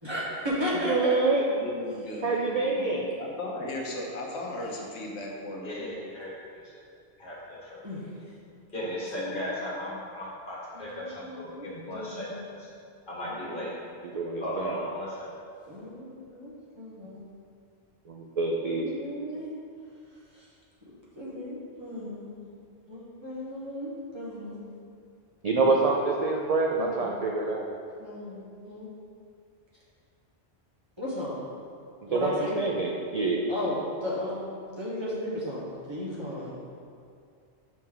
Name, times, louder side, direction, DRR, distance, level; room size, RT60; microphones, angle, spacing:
voice 1, 0.0-1.1 7.8-8.1 8.5-8.6 9.2-9.6 10.7-12.4 13.3-13.6 15.7-17.3 18.7-19.5 20.3-20.4 21.1-22.5 22.9-24.8 25.5-25.7 26.7-27.3 28.0-28.9 31.0-31.4 32.1-32.6 33.5-36.6, left 1 dB, 25° right, -9 dB, 1.4 m, -35 dB
voice 2, 0.8-1.4 2.2-3.1 14.1-14.7 18.1-18.9 25.4-27.7 32.1-33.4, right 3 dB, 55° right, -1 dB, 0.4 m, -26 dB
voice 3, 1.5-5.9, left 1 dB, 75° left, -1 dB, 1.1 m, -37 dB
voice 4, 5.6-6.3 6.6-6.8 7.2-7.8 8.7-12.7 13.1-13.7 14.4-15.3, left 1 dB, 45° left, -7 dB, 1.6 m, -36 dB
6.5 x 4.3 x 3.8 m, 2.3 s
omnidirectional pair, 1.2 m